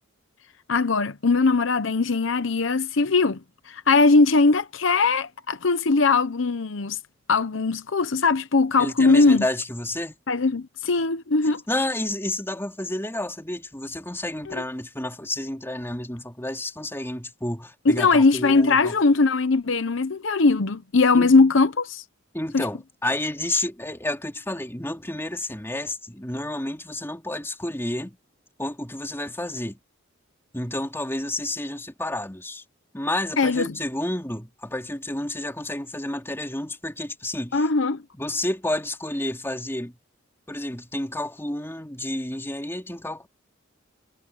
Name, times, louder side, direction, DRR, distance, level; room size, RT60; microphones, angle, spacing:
voice 1, 0.7-3.4 3.7-7.0 7.3-9.5 10.3-11.6 14.5-14.6 17.8-22.0 22.5-22.7 33.4-33.8 37.5-38.0, left 3 dB, 65° left, 0.8 m, -20 dB
voice 2, 8.8-10.2 11.7-19.0 21.1-21.3 22.3-28.2 28.6-29.8 30.5-32.6 32.9-37.6 38.1-40.0 40.5-43.3, left 1 dB, 10° left, 3.4 m, -30 dB
head